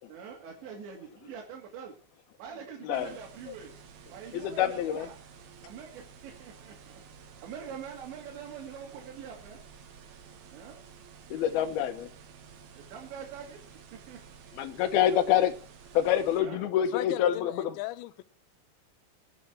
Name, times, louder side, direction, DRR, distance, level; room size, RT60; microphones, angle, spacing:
voice 1, 0.1-1.9 2.4-3.7 4.1-5.1 5.6-7.0 7.4-9.6 10.5-10.8 12.8-13.6 14.1-14.2 14.9-15.2 16.4-16.6, right 7 dB, 80° right, 1 dB, 4.5 m, -44 dB
voice 2, 2.8-3.1 3.5-3.6 4.3-5.1 11.3-12.1 14.5-15.5 15.9-17.7, left 10 dB, 70° left, 8 dB, 2.8 m, -26 dB
sound 1, 2.9-16.4, right 6 dB, 65° right, 3.3 m, -52 dB
voice 3, 16.9-18.2, left 17 dB, 85° left, 14 dB, 3.0 m, -36 dB
19.5 x 8.0 x 4.6 m, 0.34 s
omnidirectional pair, 5.0 m